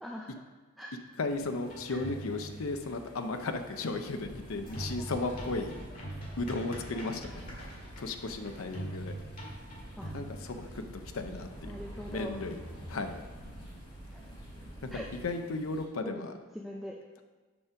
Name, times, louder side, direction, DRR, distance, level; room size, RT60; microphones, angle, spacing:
voice 1, 0.0-0.5 0.8-1.0 1.9-2.0 6.9-7.5 10.0-10.1 11.6-12.4 14.1-14.4 14.9-15.1 16.0-17.0, equal, ahead, -1 dB, 0.4 m, -43 dB
voice 2, 1.2-6.1 6.4-7.4 8.0-9.2 10.1-11.7 12.1-12.6 12.9-13.2 14.8-16.3, left 3 dB, 80° left, 7 dB, 0.6 m, -35 dB
sound 1, 1.3-15.8, equal, 25° left, 1.7 m, -52 dB
sound 2, 1.7-2.8 4.7-10.3, right 1 dB, 40° left, 2.0 m, -43 dB
sound 3, 4.2-15.2, right 1 dB, 20° right, 2.7 m, -48 dB
7.0 x 5.1 x 5.7 m, 1.4 s
head